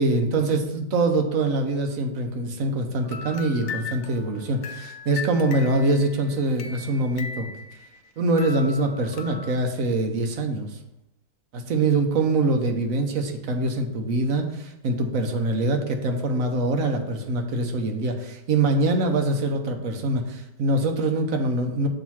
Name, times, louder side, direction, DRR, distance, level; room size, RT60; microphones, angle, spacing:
voice 1, 0.0-7.5 8.2-10.7 11.7-21.9, right 2 dB, 60° right, 4 dB, 1.1 m, -24 dB
sound 1, 3.0-8.1 8.4-9.7, left 5 dB, 85° left, 0.6 m, -38 dB
7.1 x 3.1 x 5.7 m, 0.86 s
omnidirectional pair, 1.8 m